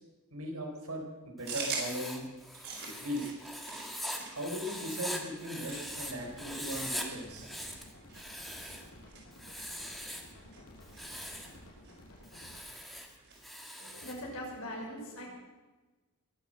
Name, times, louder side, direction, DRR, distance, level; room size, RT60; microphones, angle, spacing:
voice 1, 0.3-2.3 2.9-3.3 4.3-7.5, equal, 85° right, 2 dB, 4.2 m, -38 dB
Writing, 1.4-6.1 6.4-7.1 7.4-8.9 9.3-10.3 10.8-11.5 12.2-14.2, equal, ahead, 1.9 m, -42 dB
sound 1, 1.5-13.5, right 4 dB, 60° right, 5.3 m, -46 dB
sound 2, 5.6-12.6, left 1 dB, 85° left, 5.5 m, -54 dB
voice 2, 13.8-15.2, equal, 70° left, -2 dB, 6.0 m, -41 dB
22.5 x 8.2 x 7.7 m, 1.2 s
head